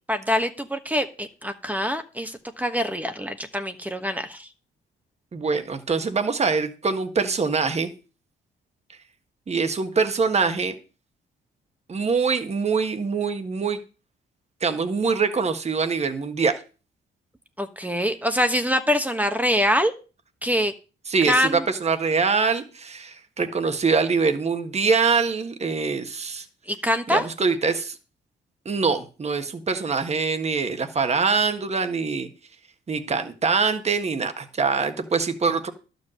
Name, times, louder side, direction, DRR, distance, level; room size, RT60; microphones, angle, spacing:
voice 1, 0.1-4.5 17.6-19.9 20.4-20.7 21.3-21.6 26.7-27.2, equal, 10° right, 8 dB, 1.1 m, -24 dB
voice 2, 5.3-7.9 9.5-10.7 11.9-13.8 14.6-16.6 21.1-26.4 27.1-27.9 28.6-32.3 32.9-35.7, right 5 dB, 35° right, 8 dB, 1.5 m, -24 dB
11.5 x 5.3 x 7.6 m, 0.34 s
cardioid pair, 90°, 20 cm